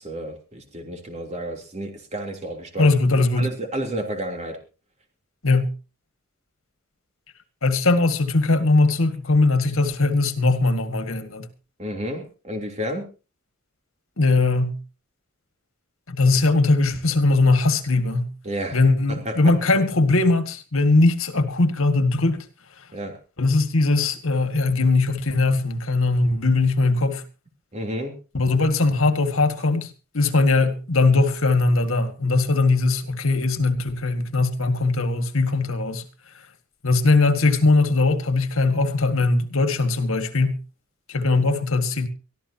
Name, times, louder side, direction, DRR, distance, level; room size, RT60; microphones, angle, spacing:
voice 1, 0.0-2.9 3.3-4.6 11.8-13.1 18.4-18.8 19.2-19.3 22.9-23.2 27.7-28.2, equal, 35° right, 3.4 m, -31 dB
voice 2, 2.8-3.5 5.4-5.7 7.6-11.5 14.2-14.8 16.1-18.3 18.7-22.5 23.4-27.2 28.3-29.9 30.1-36.0 36.8-40.6 41.1-42.1, left 3 dB, 70° left, 1.9 m, -20 dB
23.5 x 14.0 x 2.9 m
head